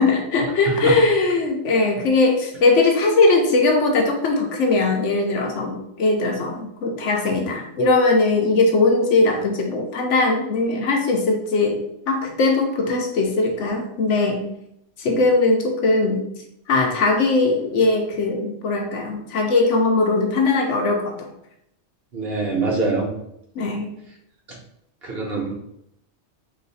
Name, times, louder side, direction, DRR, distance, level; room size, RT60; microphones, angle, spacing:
voice 1, 0.0-11.8 12.1-14.4 15.0-16.3 16.7-21.3 23.6-23.9, left 3 dB, 85° left, 2 dB, 1.1 m, -20 dB
voice 2, 0.7-1.0 15.1-15.2 22.1-23.1 25.0-25.5, right 3 dB, 55° right, -1 dB, 1.4 m, -24 dB
3.9 x 3.1 x 4.0 m, 0.78 s
omnidirectional pair, 1.2 m